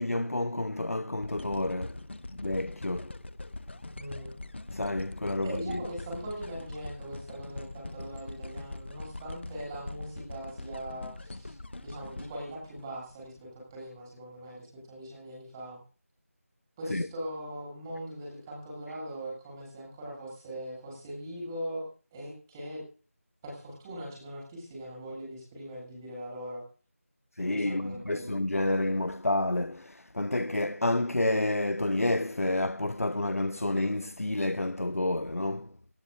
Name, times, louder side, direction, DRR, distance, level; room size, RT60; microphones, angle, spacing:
voice 1, 0.0-2.0 2.3-3.1 4.7-5.8 16.9-17.1 27.4-35.7, left 1 dB, 70° left, 1.0 m, -29 dB
sound 1, 1.2-13.4 14.0-14.1, left 2 dB, 50° left, 1.4 m, -42 dB
voice 2, 4.0-4.4 5.4-11.6 11.8-15.8 16.8-21.8 22.1-22.8 23.4-26.6 27.5-28.3, right 1 dB, 15° right, 7.8 m, -40 dB
24.5 x 19.5 x 2.6 m
figure-of-eight pair, 165°, 8 cm